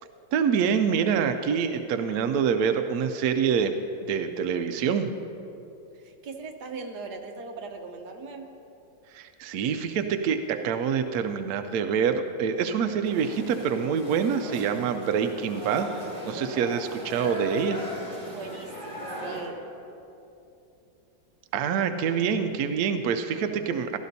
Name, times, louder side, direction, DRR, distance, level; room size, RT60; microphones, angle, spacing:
voice 1, 0.3-3.8 4.1-5.1 9.1-15.9 16.2-17.8 21.5-24.0, right 7 dB, 75° right, 7 dB, 0.8 m, -26 dB
voice 2, 5.9-8.5 16.5-16.8 18.2-19.6, right 4 dB, 60° right, 3 dB, 1.4 m, -40 dB
sound 1, 13.0-19.4, equal, 15° right, 2.8 m, -38 dB
16.5 x 12.5 x 2.7 m, 2.8 s
omnidirectional pair, 2.1 m